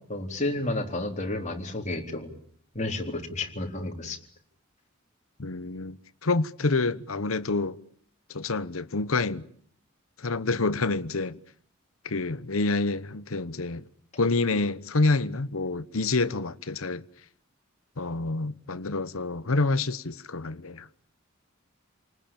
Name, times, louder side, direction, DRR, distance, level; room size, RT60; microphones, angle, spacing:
voice 1, 0.1-2.3 2.7-4.2, left 2 dB, 35° left, 3.8 m, -31 dB
voice 2, 5.4-7.8 8.3-9.5 10.2-11.4 12.0-13.8 14.2-17.0 18.0-20.9, left 3 dB, 85° left, 1.1 m, -27 dB
30.0 x 19.5 x 8.9 m
head